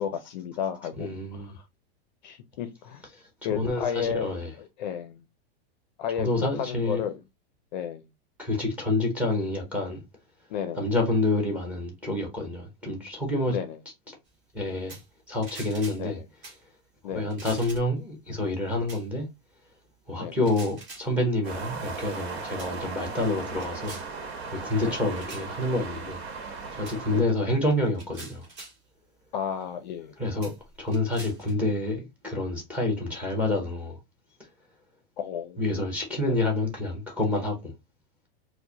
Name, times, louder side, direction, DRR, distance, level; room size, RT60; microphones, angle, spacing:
voice 1, 0.0-1.5 2.2-3.0 3.4-4.3 4.6-5.2 6.0-7.2 7.7-8.0 10.5-10.9 13.5-13.8 16.0-16.2 17.0-17.3 20.2-20.4 24.8-25.1 27.1-27.2 29.3-30.1 35.2-35.6 36.3-36.4, left 8 dB, 45° left, 0.5 m, -33 dB
voice 2, 1.0-1.5 3.5-4.5 6.2-7.0 8.4-10.0 10.7-13.6 14.5-15.0 15.3-16.2 17.0-19.3 20.1-24.0 24.5-26.2 26.7-28.5 30.2-30.5 30.8-34.0 35.6-37.7, left 2 dB, 5° right, 0.7 m, -28 dB
sound 1, 14.9-15.1 15.4-16.0 16.4-16.6 17.3-18.0 18.9-19.0 20.3-21.1 21.9-22.2 22.6-22.8 23.2-24.1 25.2-25.5 26.8-27.0 27.8-28.8 29.6-29.7 30.4-31.5, right 2 dB, 30° right, 1.7 m, -45 dB
sound 2, 21.4-27.2, right 4 dB, 80° right, 1.1 m, -37 dB
4.7 x 2.1 x 2.7 m
supercardioid pair, 170°, 32 cm